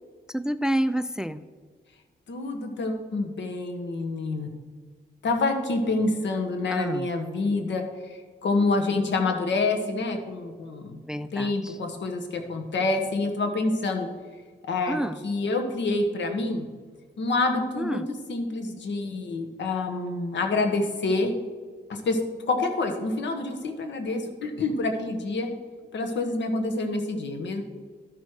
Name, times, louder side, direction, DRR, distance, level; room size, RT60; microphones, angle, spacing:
voice 1, 0.3-1.4 6.7-7.1 11.1-11.8 14.9-15.2 17.8-18.1, right 1 dB, 5° right, 14 dB, 0.4 m, -28 dB
voice 2, 2.3-4.5 5.2-11.0 11.3-14.1 14.7-15.0 15.2-16.7 17.2-18.0 18.3-21.3 21.9-22.2 22.5-25.5 25.9-27.6, left 3 dB, 80° left, 5 dB, 1.4 m, -27 dB
12.5 x 6.2 x 4.9 m, 1.5 s
cardioid pair, 85°, 18 cm